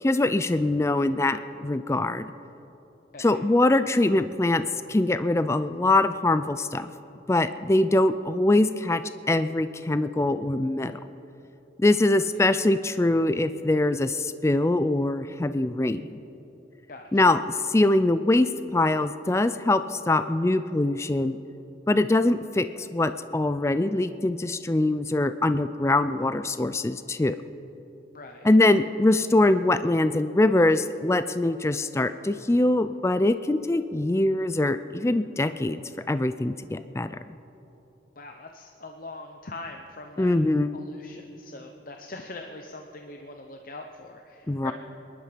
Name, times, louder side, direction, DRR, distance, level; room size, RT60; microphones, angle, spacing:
voice 1, 0.0-2.3 3.2-6.9 7.3-11.0 11.8-16.2 17.1-21.4 21.9-27.4 28.4-35.8 36.1-37.2 40.2-40.7 44.5-44.7, left 2 dB, 15° left, 12 dB, 0.3 m, -23 dB
voice 2, 16.9-17.3 28.1-28.5 38.2-40.4 40.7-44.7, left 2 dB, 50° left, 4 dB, 0.8 m, -42 dB
25.0 x 11.0 x 5.2 m, 3.0 s
head